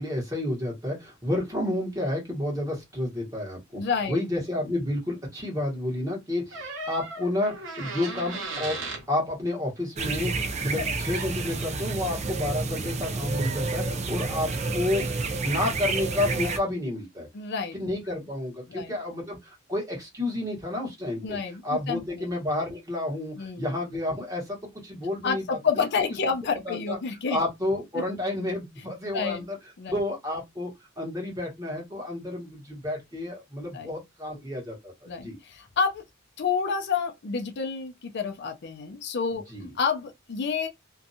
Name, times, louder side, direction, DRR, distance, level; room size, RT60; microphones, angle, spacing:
voice 1, 0.0-3.8 4.1-8.8 9.1-15.1 15.4-17.3 17.7-21.4 21.6-25.6 26.6-27.0 27.3-29.6 29.9-35.4 39.5-39.7, left 1 dB, 15° right, 1.1 m, -30 dB
voice 2, 3.8-4.2 10.7-11.0 17.3-17.8 18.1-18.2 18.7-19.0 21.2-22.3 23.4-23.7 25.2-27.4 29.1-29.4 29.8-30.0 33.7-33.9 35.1-36.0 36.4-39.5 39.8-40.7, left 5 dB, 55° left, 0.5 m, -29 dB
sound 1, 6.5-9.0 11.1-11.3, right 3 dB, 70° right, 1.0 m, -36 dB
sound 2, 10.0-16.6, right 3 dB, 35° right, 0.4 m, -29 dB
2.6 x 2.2 x 2.7 m
head